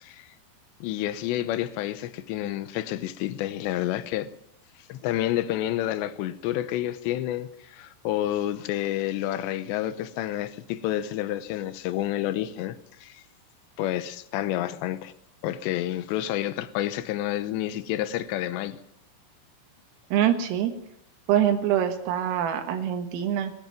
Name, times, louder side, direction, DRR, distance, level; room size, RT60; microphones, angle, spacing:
voice 1, 0.8-4.3 4.9-13.2 13.8-15.1 15.4-18.8, left 13 dB, 75° left, 2.7 m, -29 dB
voice 2, 20.1-20.7 21.3-23.5, right 10 dB, 85° right, 4.2 m, -24 dB
21.0 x 14.0 x 9.1 m
omnidirectional pair, 5.9 m